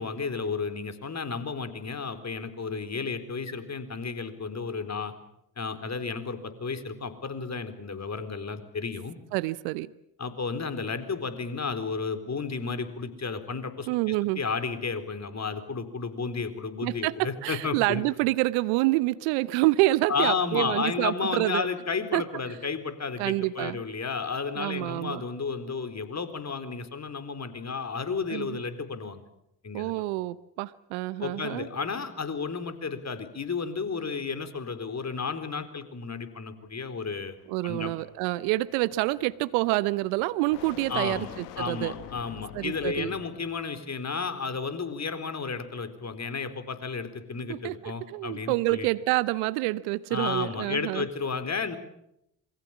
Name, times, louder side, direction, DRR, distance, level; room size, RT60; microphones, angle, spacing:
voice 1, 0.0-5.1 5.6-9.2 10.2-18.0 20.1-29.2 29.6-30.0 31.2-37.4 37.6-37.9 40.9-48.9 50.1-51.8, left 5 dB, 35° left, 4.2 m, -32 dB
voice 2, 9.3-9.9 13.9-14.4 16.8-21.7 22.1-22.2 23.2-23.8 24.6-25.2 28.3-28.6 29.7-31.7 37.5-41.9 42.5-43.1 47.5-51.1, right 19 dB, 75° right, 0.9 m, -27 dB
sound 1, 36.6-43.7, left 12 dB, 80° left, 1.6 m, -47 dB
27.5 x 23.5 x 7.3 m
hypercardioid pair, 50°, 46 cm